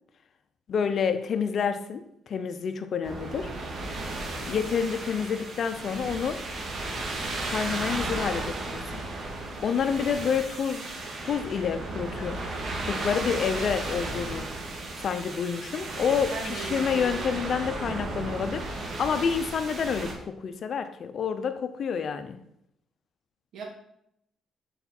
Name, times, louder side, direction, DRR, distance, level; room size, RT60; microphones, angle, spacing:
voice 1, 0.7-3.5 4.5-6.4 7.5-9.0 9.6-10.9 11.2-12.4 12.9-14.5 15.0-22.4, left 6 dB, 55° left, 0.7 m, -28 dB
sound 1, 3.0-20.1, right 2 dB, 55° right, 1.9 m, -34 dB
voice 2, 16.3-17.2 19.0-19.2 23.5-23.6, right 3 dB, 75° right, 2.0 m, -38 dB
6.9 x 4.9 x 4.3 m
cardioid pair, 90°, 0 cm